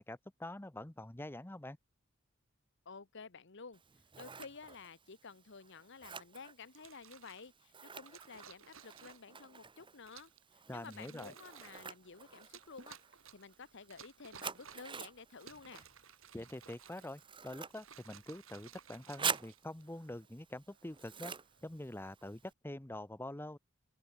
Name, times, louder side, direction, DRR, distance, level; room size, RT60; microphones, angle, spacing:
voice 1, 0.0-1.8 10.7-11.3 16.3-21.3 21.6-23.6, left 1 dB, 10° left, 0.8 m, -45 dB
voice 2, 2.8-3.8 4.2-13.0 13.3-15.9, left 4 dB, 60° left, 1.1 m, -52 dB
Scissors, 3.7-22.5, right 6 dB, 25° right, 1.0 m, -47 dB
sound 1, 6.7-7.5 8.0-9.4 10.0-10.4 10.8-11.9 12.4-13.5 13.9-15.0 15.3-17.2 17.6-20.1 20.8-21.1, right 7 dB, 85° right, 4.1 m, -57 dB
sound 2, 11.7-22.5, right 4 dB, 55° right, 4.5 m, -76 dB
open air
head